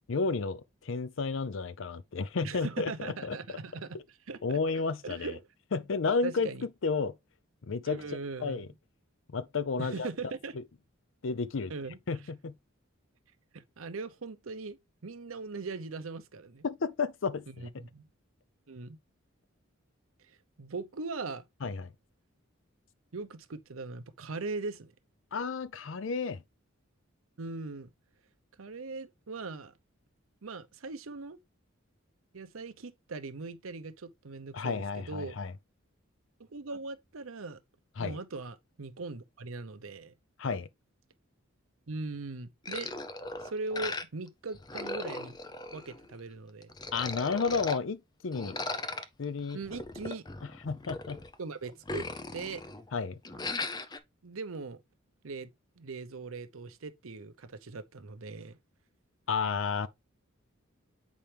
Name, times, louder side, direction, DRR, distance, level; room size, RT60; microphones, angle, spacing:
voice 1, 0.1-3.4 4.4-5.4 5.7-6.5 6.8-7.1 7.6-8.0 8.4-8.7 9.3-10.1 10.6-10.7 11.2-11.7 12.1-12.5 16.6-17.7 21.6-21.9 25.3-26.4 34.5-35.5 38.0-38.2 40.4-40.7 46.9-48.6 49.2-49.6 50.4-51.2 52.9-53.2 59.3-59.9, left 4 dB, 65° left, 0.5 m, -32 dB
voice 2, 2.4-4.0 4.3-4.6 5.0-5.4 6.2-6.7 7.9-8.7 9.8-10.5 11.7-12.0 13.5-16.6 17.5-18.1 18.7-19.0 20.6-21.4 23.1-24.9 27.4-27.9 28.6-29.7 30.4-31.4 32.3-35.4 36.4-37.6 38.0-40.1 41.9-42.9 43.4-45.4 45.7-46.7 49.5-50.2 51.4-52.1 52.3-52.6 54.2-54.8 55.2-58.6, right 3 dB, 80° right, 0.8 m, -40 dB
sound 1, 42.7-44.3 44.5-46.2 46.6-47.8 48.3-51.3 51.7-52.9 53.2-54.0, left 3 dB, 20° left, 0.5 m, -38 dB
7.2 x 4.4 x 3.3 m
head